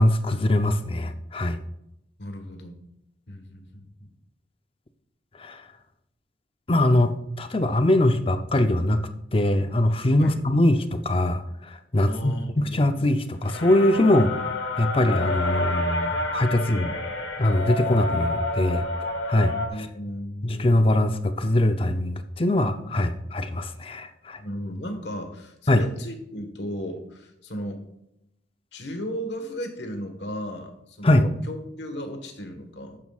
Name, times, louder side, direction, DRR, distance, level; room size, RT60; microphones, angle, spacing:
voice 1, 0.0-1.6 5.4-5.7 6.7-14.4 14.8-16.9 17.4-18.8 19.3-19.5 20.4-24.4 25.7-25.9 31.0-31.3, left 1 dB, 30° left, 8 dB, 0.6 m, -22 dB
voice 2, 2.2-2.8 3.3-4.1 10.2-10.4 12.1-13.0 16.7-16.8 19.7-20.9 24.4-27.8 28.7-33.0, equal, 60° left, 6 dB, 1.5 m, -35 dB
sound 1, 13.4-19.7, left 2 dB, 85° left, 1.5 m, -29 dB
12.5 x 9.0 x 2.4 m, 0.83 s
head